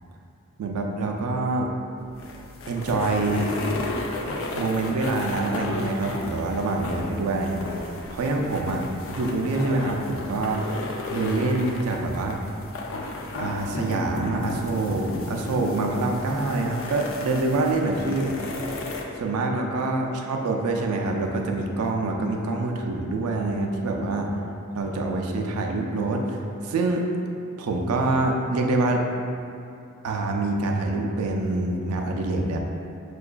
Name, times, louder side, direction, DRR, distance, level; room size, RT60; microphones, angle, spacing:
voice 1, 0.6-1.7 2.7-3.5 4.5-10.7 11.1-12.4 13.4-18.3 19.2-24.3 24.7-27.1 27.6-29.0 30.0-32.6, right 2 dB, 90° right, 2 dB, 0.4 m, -26 dB
sound 1, 2.0-19.0, left 2 dB, 65° left, 0.4 m, -34 dB
5.6 x 2.2 x 2.2 m, 2.5 s
head